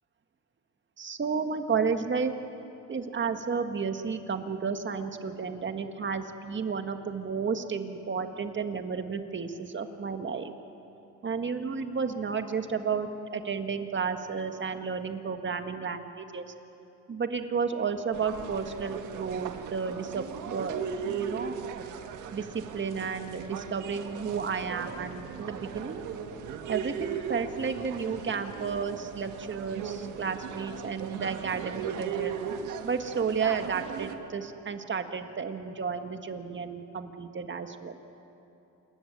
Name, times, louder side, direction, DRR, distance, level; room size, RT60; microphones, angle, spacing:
voice 1, 1.0-2.4 2.9-10.5 11.2-16.4 17.1-21.6 22.3-26.0 26.7-32.3 32.8-38.0, right 5 dB, 40° right, 7 dB, 1.7 m, -32 dB
sound 1, 18.1-34.1, right 8 dB, 85° right, 1.6 m, -38 dB
28.5 x 13.5 x 9.3 m, 3.0 s
cardioid pair, 90°, 30 cm